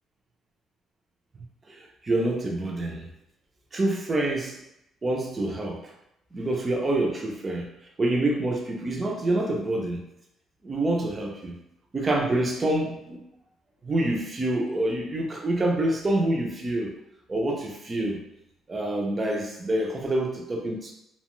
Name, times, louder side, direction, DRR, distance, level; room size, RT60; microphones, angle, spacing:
voice 1, 1.7-3.1 3.7-4.6 5.0-5.8 6.3-7.7 8.0-10.0 10.6-11.6 11.9-13.2 13.8-16.9 17.3-18.2 18.7-20.9, right 1 dB, 20° right, 1 dB, 0.4 m, -27 dB
2.6 x 2.1 x 3.0 m, 0.83 s
cardioid pair, 175°, 0 cm